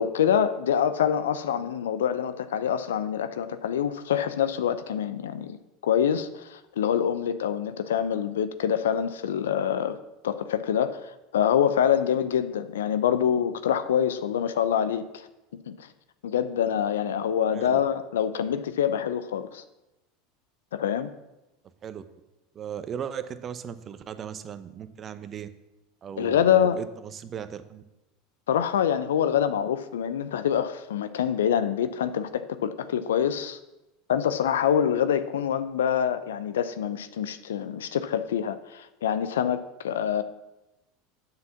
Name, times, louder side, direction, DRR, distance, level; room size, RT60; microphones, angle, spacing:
voice 1, 0.0-5.6 5.8-10.0 10.2-15.3 15.7-15.9 16.2-19.6 20.7-21.1 26.2-26.8 28.5-33.6 34.1-40.2, left 9 dB, 75° left, 12 dB, 0.5 m, -25 dB
voice 2, 22.5-25.5 26.0-27.8, right 8 dB, 35° right, 11 dB, 0.7 m, -37 dB
7.6 x 5.9 x 7.1 m, 0.98 s
hypercardioid pair, 80°, 0 cm